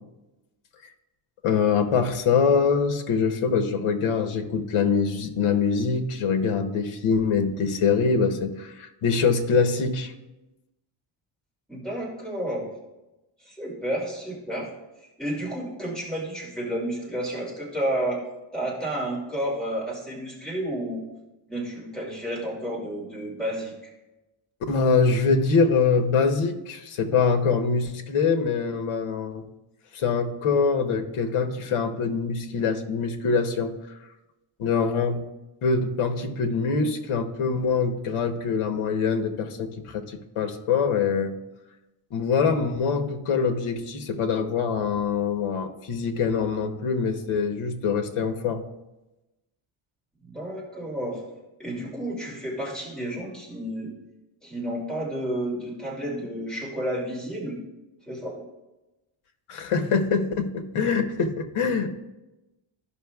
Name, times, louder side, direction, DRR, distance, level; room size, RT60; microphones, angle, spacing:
voice 1, 1.4-10.1 24.7-29.4 29.9-33.7 34.0-34.1 34.6-35.2 35.6-41.3 42.1-48.6 59.5-62.0, left 5 dB, 80° left, 6 dB, 1.1 m, -24 dB
voice 2, 11.7-12.7 13.4-14.7 15.2-18.2 18.5-21.0 21.5-23.7 50.2-51.2 51.6-53.9 54.4-57.6 58.1-58.4, right 1 dB, ahead, -6 dB, 2.5 m, -31 dB
14.5 x 5.7 x 2.3 m, 1.0 s
wide cardioid pair, 150°, 50 cm